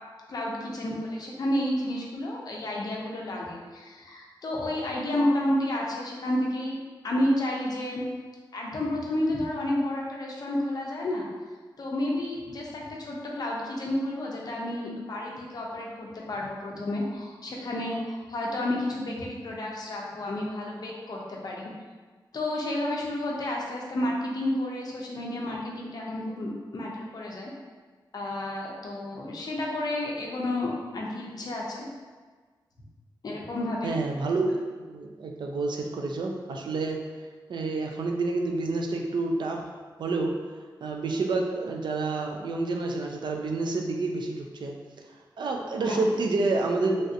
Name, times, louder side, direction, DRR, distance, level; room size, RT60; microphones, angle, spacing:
voice 1, 0.3-8.0 8.5-11.3 11.8-21.7 22.3-27.5 28.1-31.9 33.2-33.9 45.8-46.1, left 1 dB, 50° left, -2 dB, 0.5 m, -31 dB
voice 2, 33.8-37.0 37.5-39.6 40.0-40.3 40.8-44.8 45.4-47.1, right 3 dB, 65° right, 1 dB, 0.4 m, -28 dB
3.2 x 2.6 x 2.6 m, 1.4 s
wide cardioid pair, 175°, 8 cm